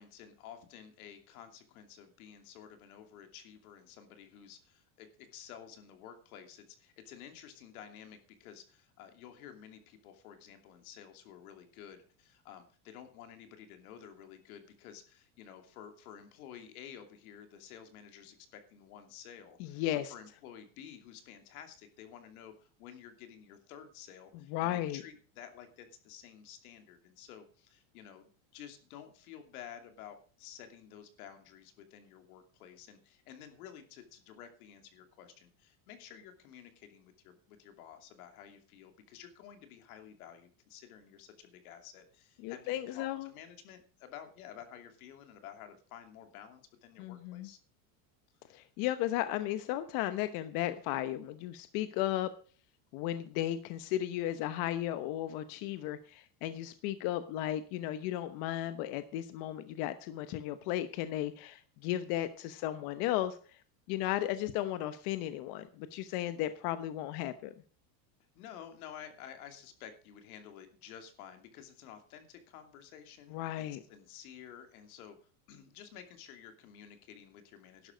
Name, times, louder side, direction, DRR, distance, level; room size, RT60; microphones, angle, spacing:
voice 1, 0.0-47.6 68.3-75.2 75.5-77.9, left 9 dB, 85° left, 7 dB, 2.8 m, -52 dB
voice 2, 19.6-20.1 24.5-25.0 42.4-43.3 47.0-47.5 48.5-52.3 52.9-63.6 63.9-67.5 73.3-73.8, left 13 dB, 55° left, 11 dB, 1.0 m, -35 dB
12.0 x 11.0 x 5.2 m, 0.40 s
supercardioid pair, 150°, 43 cm